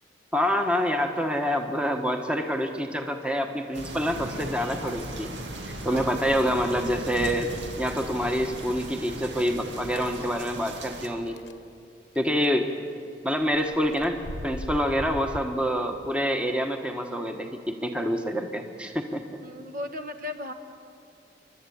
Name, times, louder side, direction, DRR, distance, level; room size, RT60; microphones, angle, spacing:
voice 1, 0.3-5.3 5.7-7.5 7.8-11.4 12.1-12.7 13.2-19.2, equal, 5° right, 4 dB, 1.2 m, -27 dB
sound 1, 3.7-11.1, right 1 dB, 90° right, 2.2 m, -37 dB
voice 2, 5.8-6.2 19.4-20.5, left 2 dB, 50° right, 7 dB, 1.4 m, -36 dB
sound 2, 9.5-10.1 10.8-10.9 11.3-11.5 12.1-12.4 13.3-15.4, left 1 dB, 80° left, 1.0 m, -38 dB
29.0 x 12.5 x 8.6 m, 2.5 s
head